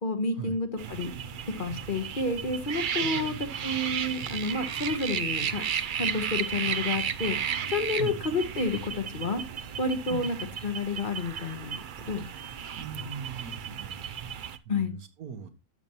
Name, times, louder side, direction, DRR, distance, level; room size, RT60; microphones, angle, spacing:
voice 1, 0.0-1.1 1.6-5.6 6.0-7.4 7.7-9.4 9.8-10.4 10.6-12.2 14.7-14.9, left 3 dB, 40° left, 6 dB, 1.1 m, -30 dB
sound 1, 0.8-14.6, right 8 dB, 60° right, 0.5 m, -34 dB
voice 2, 3.0-3.5 8.0-8.2 10.1-10.4 12.8-15.5, right 6 dB, 85° right, 8 dB, 1.7 m, -40 dB
12.0 x 7.0 x 2.9 m, 0.26 s
omnidirectional pair, 1.5 m